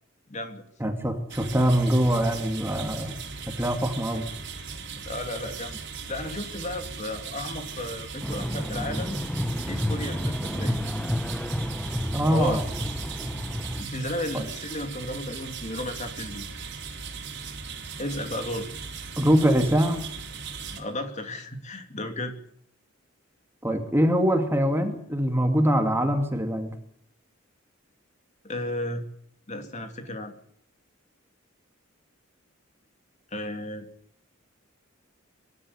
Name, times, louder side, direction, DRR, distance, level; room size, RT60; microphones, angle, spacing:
voice 1, 0.3-0.6 5.1-5.8 6.1-9.2 9.7-10.8 12.3-12.6 13.8-16.4 18.0-18.7 20.7-22.3 28.4-29.0 29.5-30.3 33.3-33.8, left 1 dB, 35° left, 6 dB, 2.9 m, -33 dB
voice 2, 0.8-3.1 3.6-4.3 12.1-12.6 14.3-14.4 19.2-20.1 23.6-26.7, equal, 10° right, 5 dB, 2.6 m, -23 dB
sound 1, 1.3-20.8, right 5 dB, 60° right, 4.1 m, -38 dB
sound 2, 8.2-13.8, equal, 5° left, 0.8 m, -30 dB
24.5 x 12.5 x 10.0 m, 0.65 s
head